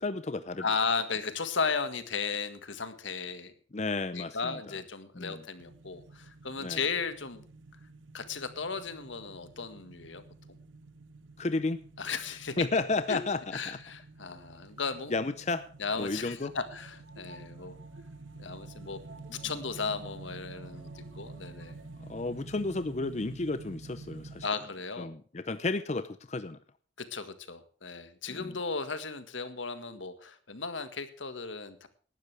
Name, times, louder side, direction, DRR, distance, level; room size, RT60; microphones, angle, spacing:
voice 1, 0.0-0.6 3.7-4.8 5.2-5.4 6.6-6.8 11.4-12.1 12.6-13.8 15.1-15.7 16.0-16.6 22.1-24.5 25.0-26.6 28.3-28.6, left 3 dB, 35° left, 13 dB, 0.6 m, -32 dB
voice 2, 0.6-3.5 4.1-7.5 8.1-10.2 12.0-12.6 13.1-13.2 13.5-15.2 15.8-17.8 18.4-19.0 19.3-21.8 24.4-25.1 27.0-31.9, left 5 dB, 80° left, 11 dB, 1.7 m, -35 dB
sound 1, 5.6-24.5, right 3 dB, 85° right, 1.0 m, -49 dB
sound 2, 15.7-22.3, right 2 dB, 65° right, 3.1 m, -56 dB
18.5 x 12.0 x 3.4 m, 0.43 s
head